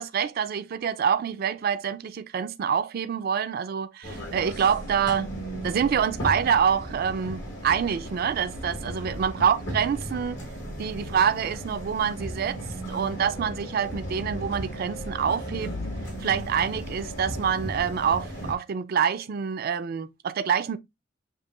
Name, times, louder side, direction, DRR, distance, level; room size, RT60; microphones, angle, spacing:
voice 1, 0.0-5.3 5.6-10.4 10.8-12.6 12.9-15.7 16.2-20.8, right 7 dB, 50° right, 0.4 m, -26 dB
sound 1, 4.0-18.5, equal, 70° left, 1.7 m, -36 dB
6.8 x 2.9 x 2.4 m
head